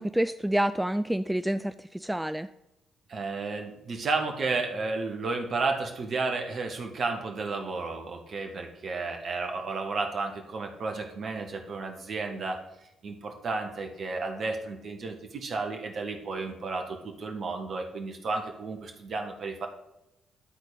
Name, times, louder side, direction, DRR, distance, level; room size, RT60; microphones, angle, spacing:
voice 1, 0.0-2.5, right 1 dB, 5° right, 12 dB, 0.3 m, -28 dB
voice 2, 3.1-12.6 13.0-19.7, right 3 dB, 50° right, 4 dB, 1.5 m, -32 dB
11.5 x 4.1 x 5.1 m, 0.92 s
figure-of-eight pair, 40°, 0 cm